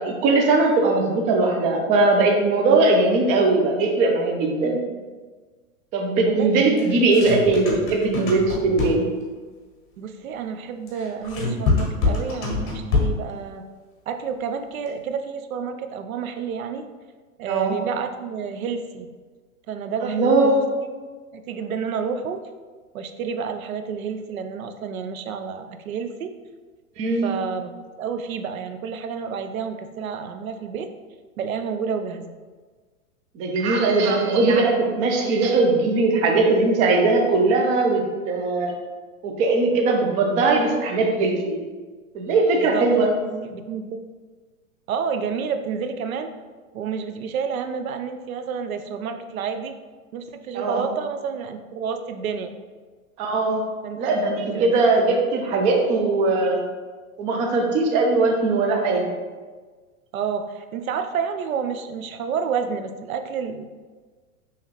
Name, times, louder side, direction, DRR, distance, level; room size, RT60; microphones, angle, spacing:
voice 1, 0.0-4.9 5.9-9.0 17.5-17.8 20.0-20.7 27.0-27.3 33.3-38.7 39.2-41.6 42.1-43.1 50.5-50.9 53.2-53.6 54.0-56.6 57.2-59.1, right 3 dB, 20° right, 1 dB, 0.4 m, -20 dB
voice 2, 6.3-6.9 10.0-13.7 14.1-16.9 17.4-19.1 19.7-20.6 21.3-22.4 22.9-26.3 27.2-30.9 31.4-32.4 42.6-44.0 44.9-46.3 46.7-49.7 50.1-52.5 53.8-55.0 60.1-63.7, right 6 dB, 75° right, 8 dB, 0.6 m, -30 dB
sound 1, 6.8-9.2 10.9-13.3, left 3 dB, 30° left, 1.3 m, -25 dB
5.6 x 3.1 x 3.0 m, 1.4 s
hypercardioid pair, 115°, 42 cm